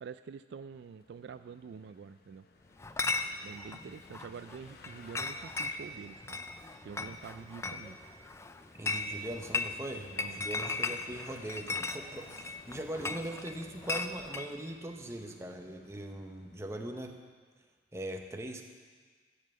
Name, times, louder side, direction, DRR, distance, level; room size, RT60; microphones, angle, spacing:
voice 1, 0.0-2.5 3.4-6.4 6.8-8.0 10.1-11.2, right 6 dB, 65° right, 11 dB, 0.3 m, -47 dB
sound 1, 0.7-17.2, left 3 dB, 55° left, 0.7 m, -59 dB
Chatter / Chink clink, 2.8-14.5, left 3 dB, 15° left, 0.4 m, -37 dB
voice 2, 8.8-17.2 17.9-18.6, right 1 dB, 15° right, 3 dB, 0.8 m, -41 dB
14.5 x 5.5 x 7.6 m, 1.6 s
head